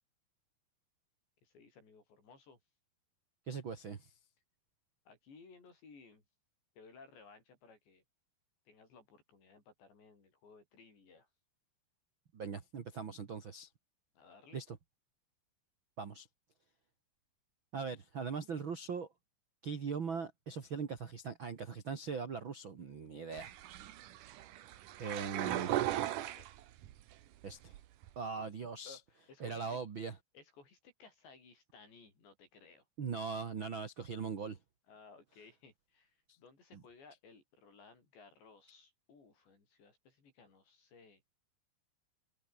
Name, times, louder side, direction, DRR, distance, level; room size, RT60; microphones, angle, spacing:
voice 1, 1.4-2.6 5.1-6.2 6.8-8.0 8.7-11.3 14.1-14.6 25.7-26.5 28.4-28.5 28.8-29.8 30.3-32.9 34.9-41.2, left 4 dB, 70° left, 10.0 m, -59 dB
voice 2, 3.5-4.1 12.3-13.7 14.5-14.8 16.0-16.3 17.7-19.1 19.6-23.5 25.0-25.7 27.4-27.7 28.1-29.0 29.4-30.1 33.0-34.6, right 5 dB, 55° right, 1.4 m, -40 dB
sound 1, 23.3-27.0 27.4-28.1, right 13 dB, 70° right, 2.0 m, -38 dB
omnidirectional pair, 5.2 m